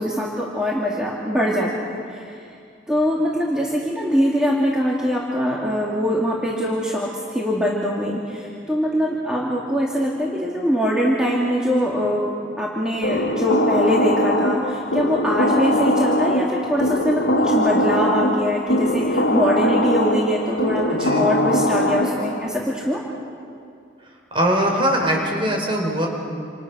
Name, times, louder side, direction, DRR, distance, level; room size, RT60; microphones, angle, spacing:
voice 1, 0.0-2.4 2.9-23.0, equal, 5° right, -5 dB, 2.7 m, -23 dB
sound 1, 13.0-22.5, left 1 dB, 75° left, 2.3 m, -21 dB
voice 2, 20.9-21.3 24.3-26.1, equal, 30° right, 1 dB, 5.0 m, -21 dB
29.0 x 28.5 x 6.4 m, 2.4 s
head